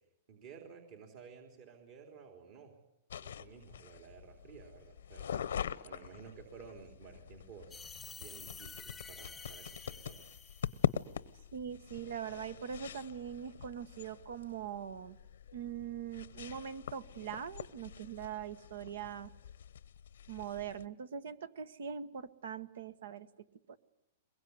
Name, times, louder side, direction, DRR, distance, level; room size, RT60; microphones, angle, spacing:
voice 1, 0.3-2.8 3.2-7.9 8.2-10.3, right 6 dB, 55° right, 3 dB, 3.7 m, -54 dB
sound 1, 3.1-20.9, left 9 dB, 85° left, 0.9 m, -43 dB
sound 2, 7.7-11.0, left 5 dB, 10° left, 0.9 m, -50 dB
voice 2, 11.5-15.2 15.5-19.3 20.3-23.3 23.7-23.8, right 8 dB, 80° right, 14 dB, 1.4 m, -42 dB
22.5 x 22.0 x 9.6 m, 0.84 s
hypercardioid pair, 130°, 0 cm